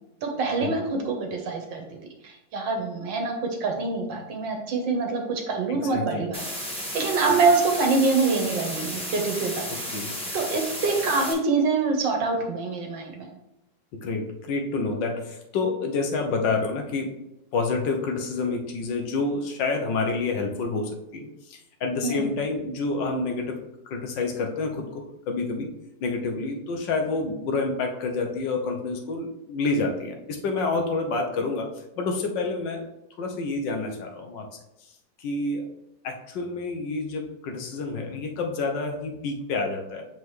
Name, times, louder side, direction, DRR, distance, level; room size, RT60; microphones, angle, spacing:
voice 1, 0.2-2.0 2.2-3.3 3.6-6.4 6.9-9.7 10.3-13.3 22.0-22.3, right 4 dB, 75° right, 3 dB, 1.7 m, -25 dB
voice 2, 5.7-6.3 9.9-10.1 14.0-17.1 17.5-25.7 26.0-32.9 33.2-34.5 35.2-35.7 36.0-40.1, left 3 dB, 75° left, 3 dB, 1.5 m, -28 dB
sound 1, 6.3-11.3, equal, 5° left, 1.0 m, -33 dB
7.3 x 4.6 x 3.2 m, 0.89 s
omnidirectional pair, 2.1 m